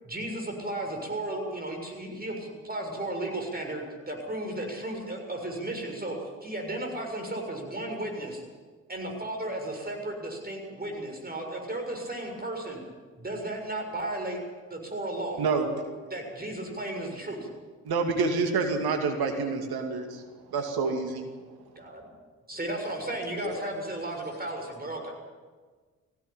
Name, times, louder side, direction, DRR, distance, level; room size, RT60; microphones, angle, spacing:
voice 1, 0.0-6.2 6.4-8.4 8.9-12.8 13.2-14.4 14.7-15.4 16.1-17.5 21.8-22.0 22.5-25.1, right 1 dB, 25° right, 2 dB, 6.9 m, -34 dB
voice 2, 15.4-15.7 17.8-21.4, right 4 dB, 65° right, 4 dB, 2.6 m, -28 dB
voice 3, 24.1-24.7, left 3 dB, 25° left, 3 dB, 4.7 m, -42 dB
18.0 x 16.5 x 9.1 m, 1.4 s
hypercardioid pair, 40°, 40 cm